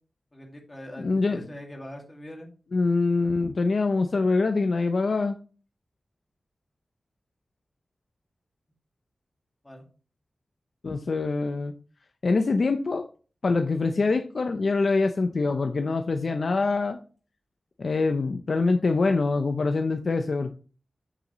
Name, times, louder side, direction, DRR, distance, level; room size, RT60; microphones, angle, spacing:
voice 1, 0.3-2.5 9.6-9.9, equal, 20° left, 1 dB, 2.2 m, -42 dB
voice 2, 1.0-1.4 2.7-5.4 10.8-11.7 12.2-13.1 13.4-17.0 17.8-20.5, left 3 dB, 60° left, 7 dB, 0.6 m, -24 dB
8.7 x 6.8 x 3.1 m, 0.37 s
wide cardioid pair, 115°, 0 cm